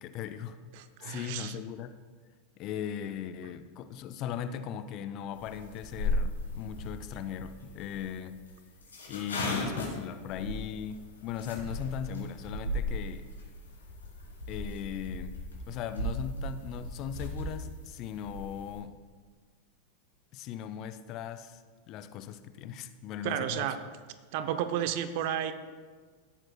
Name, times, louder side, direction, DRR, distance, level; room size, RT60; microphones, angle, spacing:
voice 1, 0.0-0.6 1.0-2.0 2.6-8.4 9.1-13.3 14.5-15.4 15.7-18.9 20.3-21.6 21.9-23.7, left 9 dB, 45° left, 11 dB, 0.6 m, -38 dB
voice 2, 0.8-1.6 23.2-23.8 24.3-25.5, right 10 dB, 55° right, 10 dB, 0.7 m, -32 dB
sound 1, 5.3-18.8, left 1 dB, 80° left, 3.2 m, -37 dB
16.5 x 8.8 x 2.3 m, 1.5 s
figure-of-eight pair, 90°, 0 cm